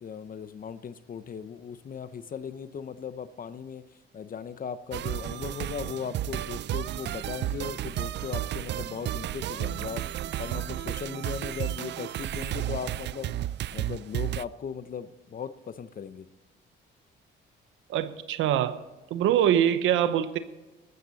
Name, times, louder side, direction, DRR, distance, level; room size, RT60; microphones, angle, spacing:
voice 1, 0.0-3.8 4.1-13.3 13.7-16.3, left 6 dB, 45° left, 0.8 m, -38 dB
sound 1, 4.9-14.4, right 13 dB, 60° right, 0.4 m, -32 dB
voice 2, 17.9-18.8 19.1-20.4, right 10 dB, 85° right, 0.9 m, -24 dB
13.5 x 13.5 x 4.1 m
cardioid pair, 90°, 20 cm